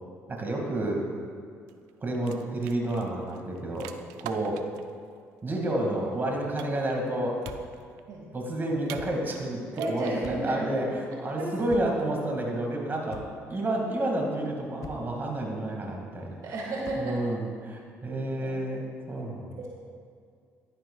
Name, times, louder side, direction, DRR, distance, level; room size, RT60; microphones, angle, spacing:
voice 1, 0.3-1.0 2.0-3.9 4.2-4.6 5.4-7.4 8.3-9.6 9.9-13.2 13.5-16.5 17.0-19.6, right 1 dB, 30° right, 0 dB, 2.0 m, -30 dB
sound 1, 1.7-4.9 6.6-7.1 7.4-8.0 8.8-9.4 9.7-10.3, right 11 dB, 85° right, 0.4 m, -44 dB
sound 2, 7.4-7.8 8.9-9.3 10.2-10.6 11.7-12.1 13.1-13.5 14.8-15.2 16.8-17.1, left 6 dB, 60° left, 0.7 m, -44 dB
voice 2, 9.7-10.6 11.3-11.5 16.4-17.2 18.4-18.5 19.6-19.7, right 2 dB, 65° right, -3 dB, 1.8 m, -33 dB
11.5 x 10.0 x 2.3 m, 2.2 s
supercardioid pair, 65°, 6 cm